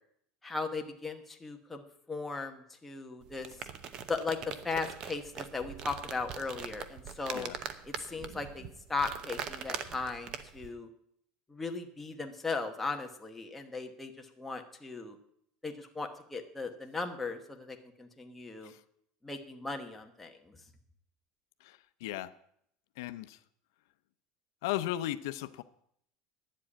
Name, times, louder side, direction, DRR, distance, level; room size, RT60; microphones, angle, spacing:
voice 1, 0.4-3.5 4.1-7.5 8.0-10.9 11.5-14.1 14.4-15.2 15.6-18.7 19.2-20.6, left 4 dB, 10° left, 3 dB, 1.1 m, -37 dB
sound 1, 3.2-10.7, right 7 dB, 35° right, 0.8 m, -42 dB
voice 2, 21.6-22.3 23.0-23.4 24.6-25.6, left 14 dB, 85° left, 12 dB, 0.6 m, -36 dB
10.0 x 7.7 x 8.6 m, 0.71 s
cardioid pair, 160°, 2 cm